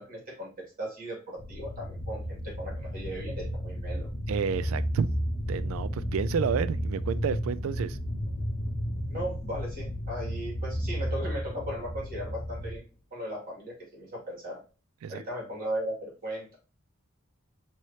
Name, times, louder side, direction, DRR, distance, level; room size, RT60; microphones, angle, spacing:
voice 1, 0.0-4.1 9.1-12.8 13.1-14.6 15.1-16.5, equal, 45° right, 2.2 m, -37 dB
sound 1, 1.4-12.8, equal, 40° left, 0.7 m, -33 dB
voice 2, 4.3-5.1 5.5-8.0 15.0-15.2, right 7 dB, 85° right, 0.3 m, -30 dB
4.7 x 2.9 x 2.8 m
head